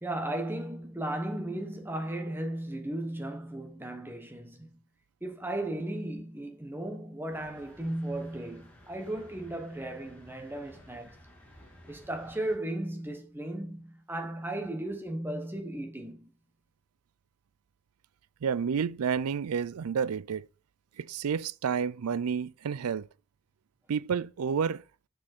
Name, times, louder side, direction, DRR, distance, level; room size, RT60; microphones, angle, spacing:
voice 1, 0.0-4.8 5.2-11.2 11.9-16.3, right 1 dB, 10° right, 1.1 m, -35 dB
sound 1, 7.3-12.6, equal, 5° left, 1.8 m, -55 dB
voice 2, 18.4-20.5 21.0-23.1 23.9-24.8, right 6 dB, 90° right, 0.4 m, -30 dB
7.5 x 6.5 x 4.4 m
head